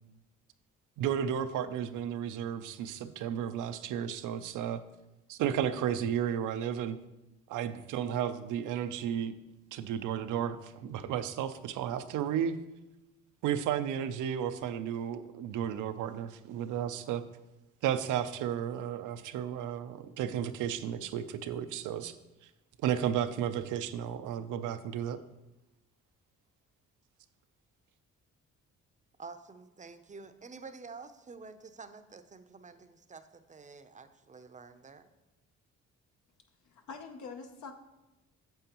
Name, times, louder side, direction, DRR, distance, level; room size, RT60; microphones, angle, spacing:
voice 1, 1.0-4.8 5.3-7.0 7.5-9.3 9.7-12.6 13.4-17.2 17.8-22.2 22.8-25.2, right 9 dB, 85° right, 11 dB, 0.6 m, -33 dB
voice 2, 29.2-35.1, right 4 dB, 25° right, 10 dB, 0.6 m, -49 dB
voice 3, 36.6-37.7, left 5 dB, 75° left, 4 dB, 0.9 m, -44 dB
8.9 x 7.1 x 3.0 m, 1.0 s
cardioid pair, 90°, 30 cm